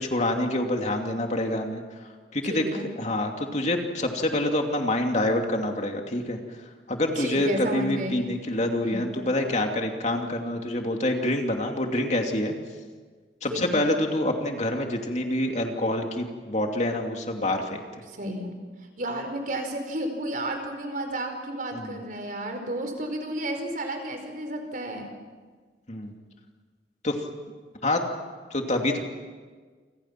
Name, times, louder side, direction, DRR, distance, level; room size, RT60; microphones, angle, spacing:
voice 1, 0.0-1.8 2.3-2.7 3.0-6.4 6.9-12.5 13.4-17.8 21.7-22.0 25.9-26.2 27.0-27.2 27.8-28.0 28.5-29.0, left 1 dB, 40° left, 3 dB, 2.8 m, -26 dB
voice 2, 2.5-2.9 7.1-8.2 8.8-9.1 13.5-13.8 18.0-18.5 19.0-25.1, right 1 dB, 50° right, 5 dB, 4.9 m, -32 dB
29.0 x 27.0 x 6.1 m, 1.5 s
head